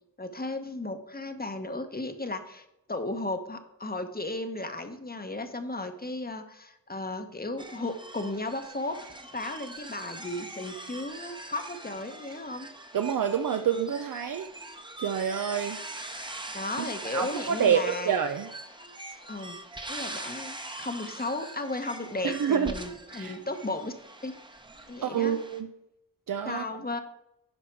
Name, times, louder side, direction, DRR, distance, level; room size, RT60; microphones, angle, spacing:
voice 1, 0.2-12.7 16.5-18.1 19.3-19.6 19.9-23.9 24.2-24.3 24.9-25.4 26.4-27.0, left 2 dB, 25° left, 7 dB, 1.0 m, -35 dB
sound 1, 7.6-25.6, right 2 dB, 15° right, 0.9 m, -42 dB
voice 2, 12.9-14.5 15.0-15.8 16.8-16.9 17.1-18.5 22.2-22.7 23.1-23.3 25.0-25.7 26.3-26.6, right 8 dB, 65° right, 6 dB, 0.6 m, -27 dB
11.5 x 4.9 x 4.5 m, 0.87 s
wide cardioid pair, 75°, 35 cm